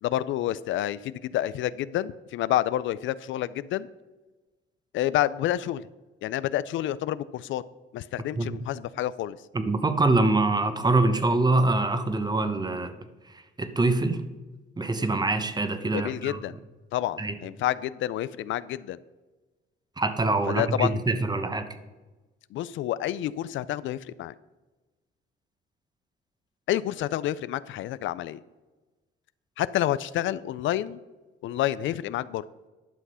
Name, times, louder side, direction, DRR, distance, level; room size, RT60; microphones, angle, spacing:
voice 1, 0.0-3.9 4.9-5.9 6.2-7.6 7.9-9.4 15.9-16.6 16.9-19.0 20.5-20.9 22.5-24.3 26.7-28.4 29.6-31.0 31.4-32.4, left 13 dB, 75° left, 17 dB, 0.4 m, -29 dB
voice 2, 9.5-12.9 13.6-14.2 14.8-16.4 17.2-17.3 20.0-21.7, right 2 dB, 20° right, 10 dB, 1.0 m, -24 dB
11.0 x 5.9 x 5.6 m, 1.2 s
cardioid pair, 90°, 20 cm